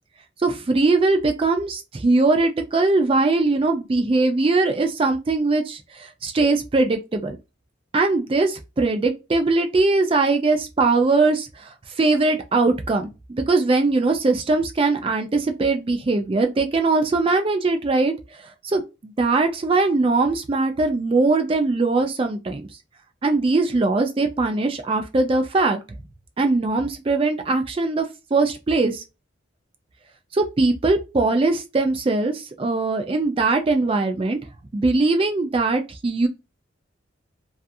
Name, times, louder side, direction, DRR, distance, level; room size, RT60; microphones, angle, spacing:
voice 1, 0.4-7.4 7.9-22.7 23.2-25.8 26.4-28.1 28.3-29.0 30.3-34.4 34.7-36.3, right 3 dB, 30° right, 0.3 m, -21 dB
2.4 x 2.3 x 2.6 m
head